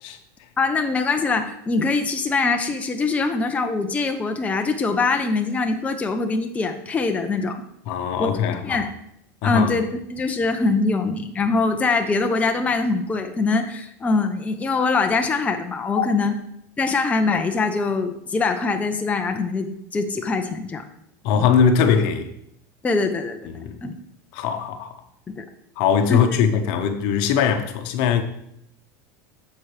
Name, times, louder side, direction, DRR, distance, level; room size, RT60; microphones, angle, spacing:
voice 1, 0.6-7.6 8.2-8.9 9.4-16.3 16.8-19.7 19.9-20.8 22.8-23.4 23.8-23.9 25.3-25.4 26.1-26.2, left 3 dB, 15° left, 0.7 m, -23 dB
voice 2, 7.9-8.8 9.4-9.8 16.0-16.1 21.2-22.3 23.4-23.8 24.3-25.0 25.8-28.2, left 7 dB, 60° left, 1.0 m, -21 dB
10.0 x 7.0 x 3.3 m
supercardioid pair, 135°, 9 cm